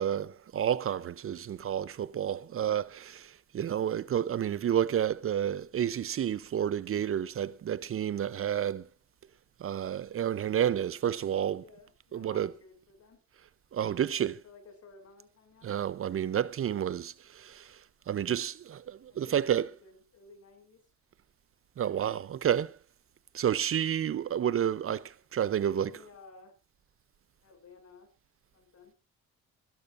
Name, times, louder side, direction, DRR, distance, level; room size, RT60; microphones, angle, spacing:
voice 1, 0.0-8.9 9.6-11.6 12.1-12.5 13.7-14.4 15.6-17.8 18.1-19.7 21.8-22.8 23.3-26.0, right 9 dB, 45° right, 0.6 m, -30 dB
voice 2, 11.6-13.2 14.0-15.7 19.1-20.8 25.7-26.5 27.4-28.1 28.5-28.9, left 4 dB, 55° left, 6.1 m, -55 dB
27.0 x 12.5 x 2.5 m
cardioid pair, 90°, 30 cm